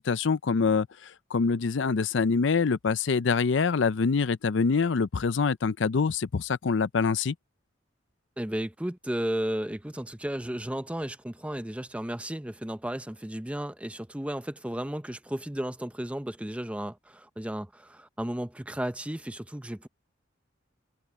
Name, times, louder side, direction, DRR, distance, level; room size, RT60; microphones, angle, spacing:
voice 1, 0.0-7.3, left 5 dB, 70° left, 0.5 m, -25 dB
voice 2, 8.4-19.9, right 1 dB, 5° right, 0.7 m, -34 dB
open air
head